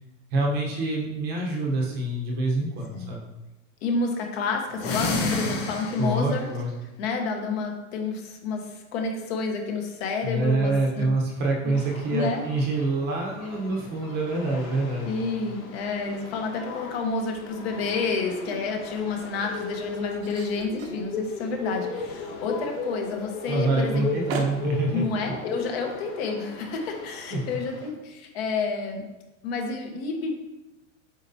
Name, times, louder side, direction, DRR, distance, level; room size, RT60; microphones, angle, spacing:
voice 1, 0.3-3.3 6.0-6.7 10.2-15.1 23.5-25.3 27.3-27.4, right 2 dB, 25° right, -1 dB, 0.9 m, -26 dB
voice 2, 3.8-6.5 7.0-11.0 11.6-11.7 12.1-12.4 15.0-24.1 24.9-29.0 29.4-30.3, left 4 dB, 50° left, 3 dB, 1.1 m, -29 dB
sound 1, 4.7-6.4, left 3 dB, 20° left, 0.3 m, -28 dB
sound 2, 11.7-27.9, left 3 dB, 85° left, 1.9 m, -37 dB
sound 3, 18.9-27.7, right 4 dB, 80° right, 1.2 m, -44 dB
7.8 x 4.5 x 2.7 m, 1.0 s
supercardioid pair, 165°, 41 cm